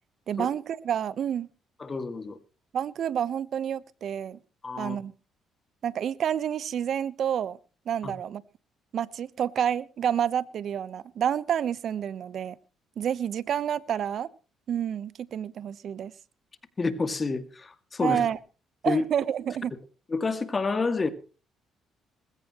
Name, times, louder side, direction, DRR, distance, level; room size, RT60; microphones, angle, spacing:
voice 1, 0.3-1.5 2.7-4.4 4.8-5.1 5.8-7.6 7.9-8.4 8.9-12.6 13.0-14.3 14.7-16.1 18.0-18.4 18.8-19.7, right 9 dB, 60° right, 1.0 m, -29 dB
voice 2, 1.8-2.4 4.6-5.0 8.0-8.1 16.8-18.2 18.8-19.0 20.1-21.1, left 3 dB, 30° left, 2.2 m, -28 dB
20.0 x 16.0 x 3.1 m
supercardioid pair, 70°, 0 cm